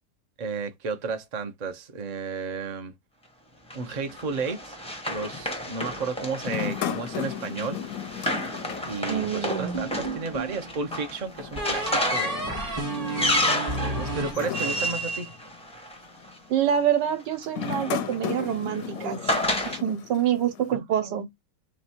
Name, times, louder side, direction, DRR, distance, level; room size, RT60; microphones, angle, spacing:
voice 1, 0.4-2.9 3.7-4.7 5.1-7.8 8.9-12.5 13.7-15.3 20.7-21.1, right 4 dB, 40° right, 0.5 m, -33 dB
Run, 3.7-16.3 17.3-19.8, equal, 5° left, 0.5 m, -31 dB
sound 1, 6.4-9.8 10.1-10.2 11.3-15.5 16.2-16.5 17.4-20.7, left 10 dB, 70° left, 0.9 m, -36 dB
voice 2, 9.1-9.8 16.5-19.3 19.7-21.3, right 9 dB, 85° right, 1.4 m, -26 dB
sound 2, 9.7-10.6 11.6-15.0, right 2 dB, 25° right, 1.2 m, -32 dB
3.2 x 3.1 x 4.3 m
omnidirectional pair, 1.8 m